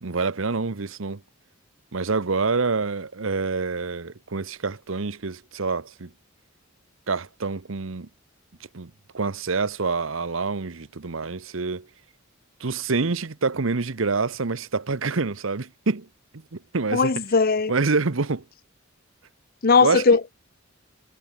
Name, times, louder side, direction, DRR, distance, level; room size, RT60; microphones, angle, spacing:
voice 1, 0.0-1.2 1.9-6.1 7.1-8.1 8.7-11.9 12.6-16.1 16.5-17.1 17.7-18.4 19.8-20.0, right 4 dB, 70° right, 1.0 m, -26 dB
voice 2, 16.9-17.7 19.6-20.3, left 4 dB, 45° left, 0.7 m, -19 dB
head